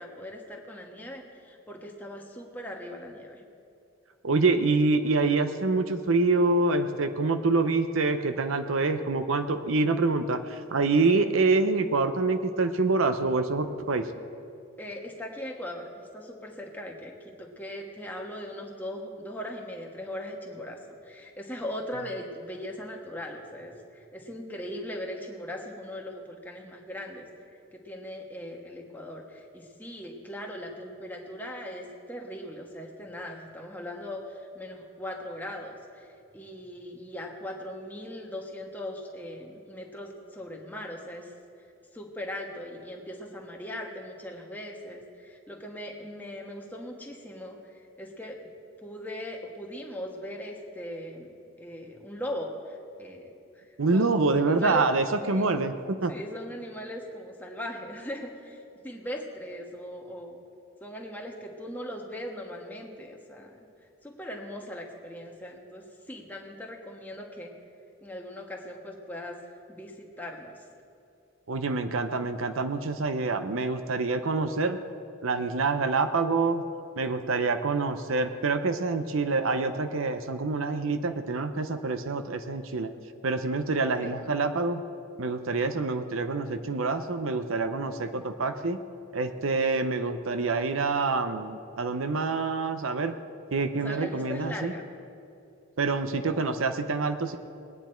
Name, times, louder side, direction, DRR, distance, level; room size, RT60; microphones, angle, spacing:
voice 1, 0.0-3.4 14.8-27.3 27.7-41.3 41.9-48.4 48.8-54.1 54.5-54.9 55.3-55.5 56.1-60.4 60.8-63.6 64.0-67.5 68.0-70.6 84.0-84.2 93.7-94.8, left 1 dB, 10° left, 0 dB, 1.3 m, -39 dB
voice 2, 4.2-14.1 53.8-56.1 71.5-74.8 75.2-76.6 77.0-82.9 83.2-84.8 85.2-88.8 89.1-93.1 93.5-94.7 95.8-97.4, right 3 dB, 75° right, 9 dB, 0.7 m, -26 dB
20.5 x 9.4 x 4.4 m, 2.6 s
head